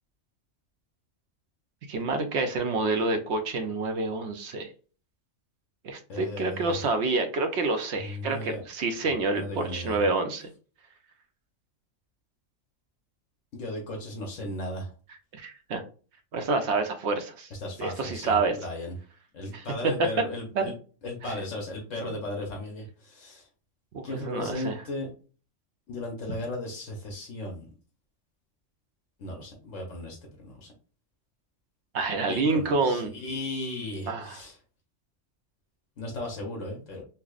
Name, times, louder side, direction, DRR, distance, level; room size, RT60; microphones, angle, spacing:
voice 1, 1.9-4.7 5.8-10.5 15.3-15.8 16.3-17.5 17.8-18.6 19.5-19.9 20.5-20.7 23.9-24.7 31.9-33.1 34.1-34.4, right 3 dB, 65° right, 6 dB, 0.8 m, -28 dB
voice 2, 6.1-6.8 8.0-8.6 9.0-10.0 13.5-14.9 17.6-19.0 19.3-20.7 21.0-23.5 24.0-25.1 25.9-27.7 29.2-30.7 32.2-34.6 36.0-37.0, left 1 dB, 70° left, 0 dB, 1.3 m, -36 dB
5.6 x 2.0 x 2.4 m, 0.37 s
omnidirectional pair, 1.4 m